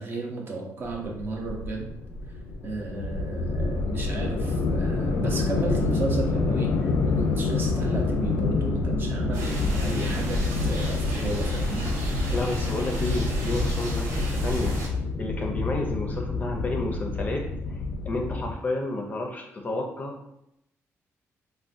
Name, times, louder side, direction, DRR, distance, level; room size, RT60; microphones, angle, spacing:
voice 1, 0.0-1.9 2.6-11.9, right 3 dB, 40° right, 0 dB, 0.6 m, -33 dB
sound 1, 0.9-18.5, left 3 dB, 90° left, 0.3 m, -27 dB
sound 2, 9.3-14.9, right 2 dB, 75° right, 0.8 m, -33 dB
voice 2, 12.3-14.7 15.2-17.4 17.7-17.8 18.0-20.2, left 2 dB, 30° left, 2 dB, 0.5 m, -31 dB
3.7 x 2.1 x 2.5 m, 0.81 s
cardioid pair, 135°, 6 cm